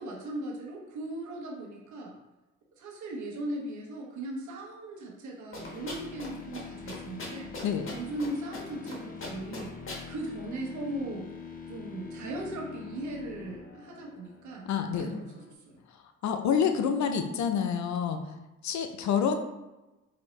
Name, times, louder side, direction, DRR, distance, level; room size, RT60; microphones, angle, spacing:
voice 1, 0.0-2.1 2.8-7.5 7.9-9.8 10.1-11.3 11.7-14.7 15.0-15.8, right 1 dB, 70° right, -1 dB, 1.1 m, -38 dB
sound 1, 5.5-6.3 6.5-6.6 6.9-8.3 8.5-8.9 9.2-10.0, left 2 dB, 45° left, 1.3 m, -39 dB
sound 2, 5.6-15.5, left 5 dB, 30° left, 0.6 m, -45 dB
voice 2, 14.7-15.2 16.2-18.2 18.6-19.4, left 7 dB, 70° left, 7 dB, 0.6 m, -27 dB
4.9 x 2.7 x 3.1 m, 1.0 s
cardioid pair, 90°, 30 cm